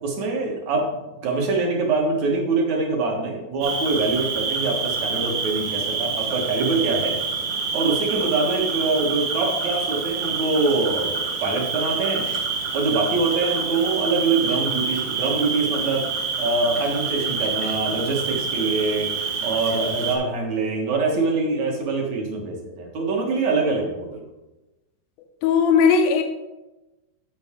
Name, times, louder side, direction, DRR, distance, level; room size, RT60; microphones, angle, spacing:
voice 1, 0.0-7.2 7.7-12.2 12.7-16.1 16.4-19.1 19.4-24.2, right 3 dB, 55° right, 0 dB, 2.6 m, -24 dB
Cricket, 3.6-20.2, right 5 dB, 80° right, 3.4 m, -27 dB
voice 2, 25.4-26.2, left 6 dB, 85° left, 5 dB, 2.4 m, -17 dB
14.0 x 5.3 x 3.7 m, 1.0 s
omnidirectional pair, 4.2 m